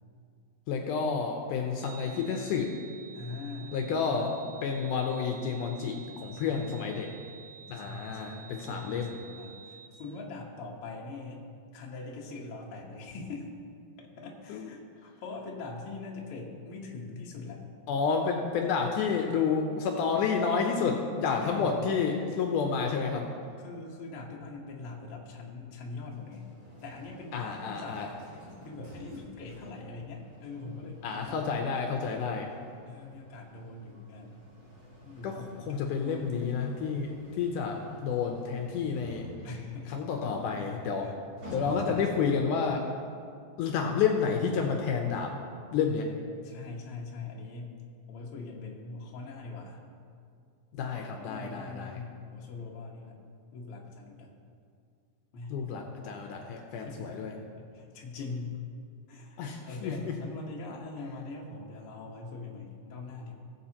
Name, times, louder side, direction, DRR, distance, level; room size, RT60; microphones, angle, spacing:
voice 1, 0.7-2.7 3.7-7.1 7.7-9.2 14.5-14.7 17.9-23.3 27.3-28.1 31.0-32.5 35.2-39.2 39.9-41.1 41.5-42.8 43.6-45.3 45.7-46.1 50.7-52.0 55.5-57.3 59.4-60.2, left 5 dB, 75° left, 2 dB, 2.1 m, -30 dB
sound 1, 1.8-9.9, right 7 dB, 80° right, 2.2 m, -50 dB
voice 2, 3.1-3.8 5.9-6.1 6.3-6.7 7.7-11.4 11.7-13.5 14.0-17.6 21.3-21.8 23.6-26.4 26.8-28.2 28.6-31.5 32.9-34.5 35.0-35.9 39.4-40.1 41.6-42.3 46.4-47.8 48.1-49.8 51.2-53.1 53.5-54.3 55.3-55.6 56.8-57.2 57.6-58.6 59.1-63.3, left 3 dB, 55° left, -1 dB, 1.7 m, -42 dB
sound 2, 26.1-42.5, equal, 25° right, 3.0 m, -50 dB
18.5 x 7.6 x 2.9 m, 2.3 s
omnidirectional pair, 3.9 m